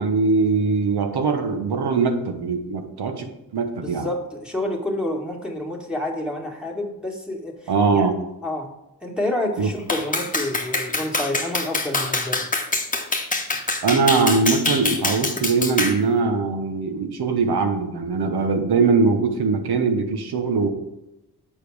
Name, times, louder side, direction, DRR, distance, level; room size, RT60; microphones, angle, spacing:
voice 1, 0.0-3.3 3.5-4.1 7.7-8.2 9.6-9.7 13.8-20.7, right 4 dB, 75° right, 6 dB, 1.1 m, -21 dB
voice 2, 3.8-8.1 8.4-8.7 9.0-12.4, left 1 dB, ahead, -1 dB, 1.9 m, -29 dB
Clapping, 9.9-16.0, left 3 dB, 20° left, 1.1 m, -25 dB
7.6 x 4.9 x 4.9 m, 0.91 s
cardioid pair, 60°, 39 cm